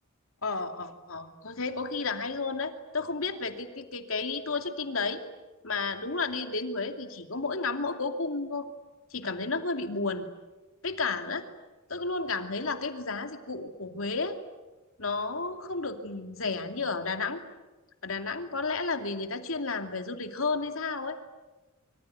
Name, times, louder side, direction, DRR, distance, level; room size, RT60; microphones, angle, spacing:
voice 1, 0.4-5.2 5.6-8.7 9.1-10.3 10.8-11.4 11.9-14.4 15.0-17.4 18.0-21.2, left 3 dB, 75° left, 6 dB, 2.7 m, -32 dB
25.5 x 24.5 x 9.4 m, 1.2 s
head